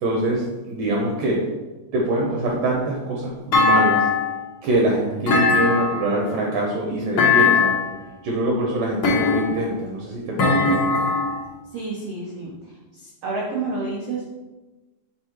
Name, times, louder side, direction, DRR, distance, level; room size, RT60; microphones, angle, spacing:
voice 1, 0.0-1.4 1.9-4.1 4.6-7.8 8.2-10.6, right 1 dB, 70° right, -2 dB, 2.2 m, -24 dB
Thump thud, 3.5-4.4 5.3-6.2 7.2-7.9 9.0-9.7 10.4-11.4, left 4 dB, 85° left, 1.1 m, -19 dB
voice 2, 11.7-14.3, right 3 dB, 90° right, -5 dB, 1.3 m, -30 dB
7.0 x 3.7 x 4.5 m, 1.2 s
omnidirectional pair, 4.4 m